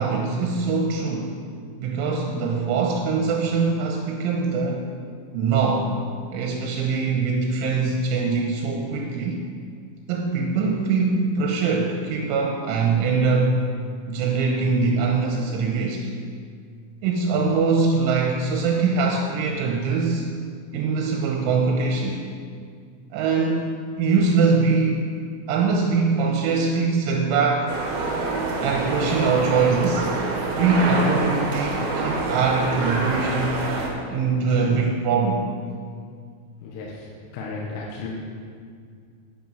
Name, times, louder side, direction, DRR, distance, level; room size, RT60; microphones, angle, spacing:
voice 1, 0.0-1.4 1.8-4.9 5.3-5.9 6.3-9.4 10.1-13.6 14.1-16.1 17.0-20.3 20.7-22.2 23.1-23.7 24.0-25.0 25.5-27.7 28.6-30.1 30.6-33.6 34.1-35.4, right 4 dB, 80° right, 1 dB, 3.2 m, -22 dB
sound 1, 27.7-33.9, right 2 dB, 60° right, 2.6 m, -26 dB
voice 2, 36.6-38.1, left 3 dB, 75° left, -4 dB, 3.8 m, -34 dB
10.5 x 9.3 x 6.0 m, 2.1 s
omnidirectional pair, 5.8 m